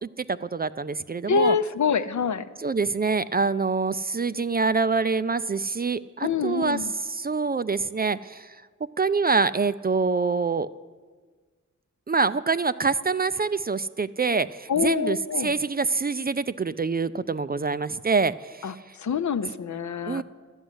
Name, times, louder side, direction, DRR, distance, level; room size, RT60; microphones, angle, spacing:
voice 1, 0.0-1.6 2.6-8.6 9.0-10.7 12.1-18.7 20.1-20.2, right 4 dB, 30° right, 14 dB, 0.4 m, -25 dB
voice 2, 1.3-2.4 6.2-6.9 14.7-15.5 18.6-18.7 19.0-20.2, left 6 dB, 60° left, 11 dB, 0.7 m, -25 dB
12.5 x 6.3 x 9.7 m, 1.5 s
cardioid pair, 50°, 32 cm